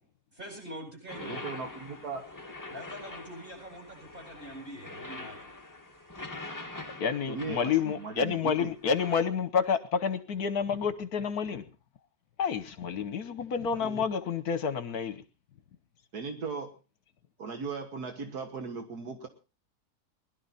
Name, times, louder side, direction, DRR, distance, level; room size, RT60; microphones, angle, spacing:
voice 1, 0.3-1.5 2.7-5.4, equal, 35° right, 8.1 m, -44 dB
sound 1, 1.1-9.2, left 2 dB, 10° left, 1.9 m, -44 dB
voice 2, 1.2-2.2 7.3-8.7 13.8-14.0 16.1-16.8 17.4-19.3, right 4 dB, 75° right, 2.0 m, -37 dB
voice 3, 7.0-11.6 12.4-15.2, left 6 dB, 70° left, 1.5 m, -29 dB
20.5 x 12.0 x 4.2 m
omnidirectional pair, 1.7 m